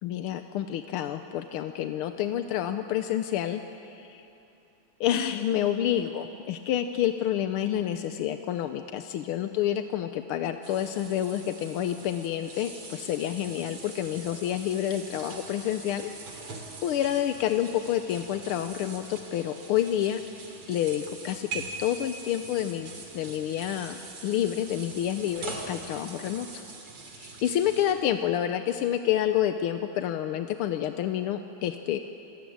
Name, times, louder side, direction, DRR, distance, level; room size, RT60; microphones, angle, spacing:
voice 1, 0.0-4.2 5.0-16.1 16.8-20.2 20.7-26.6 27.2-32.0, left 11 dB, 85° left, 8 dB, 1.7 m, -29 dB
sound 1, 10.6-27.9, right 4 dB, 90° right, 3.8 m, -43 dB
27.0 x 19.5 x 8.6 m, 2.8 s
omnidirectional pair, 2.4 m